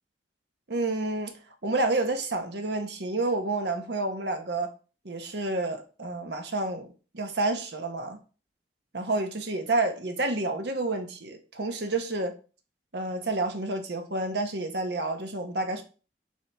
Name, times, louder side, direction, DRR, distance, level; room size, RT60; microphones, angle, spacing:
voice 1, 0.7-4.7 5.0-6.9 7.1-8.2 8.9-12.4 12.9-15.8, right 2 dB, 70° right, 1.1 m, -29 dB
7.4 x 4.4 x 3.5 m
head